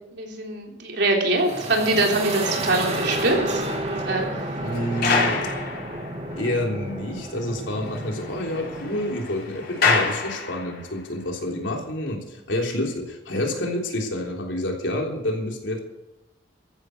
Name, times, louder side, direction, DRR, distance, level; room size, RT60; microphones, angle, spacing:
voice 1, 0.1-3.6 3.9-4.3, right 2 dB, 65° right, 1 dB, 3.6 m, -23 dB
sound 1, 1.3-9.1, right 1 dB, 35° right, 2.3 m, -31 dB
sound 2, 2.9-6.6 6.9-7.0 7.3-7.4 7.7-11.0 11.7-11.9, left 4 dB, 60° left, 4.5 m, -28 dB
voice 2, 4.6-5.5 6.4-15.8, left 1 dB, 80° left, 1 dB, 3.5 m, -28 dB
14.5 x 11.0 x 6.7 m, 0.93 s
head